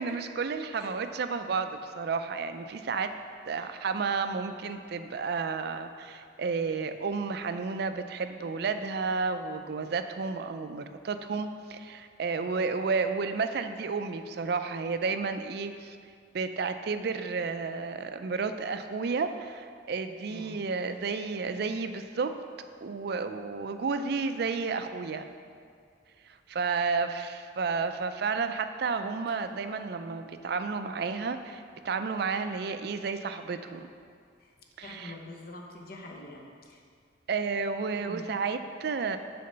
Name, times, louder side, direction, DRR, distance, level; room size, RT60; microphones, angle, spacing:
voice 1, 0.0-3.1 3.5-16.0 16.3-22.3 22.8-25.3 26.5-33.9 34.8-35.1 37.3-39.2, right 4 dB, 55° right, 9 dB, 0.4 m, -31 dB
voice 2, 20.3-20.6 29.3-29.4 34.4-34.5 34.8-36.8 38.0-38.3, left 2 dB, 50° left, 1 dB, 0.9 m, -45 dB
6.7 x 4.3 x 6.6 m, 2.2 s
head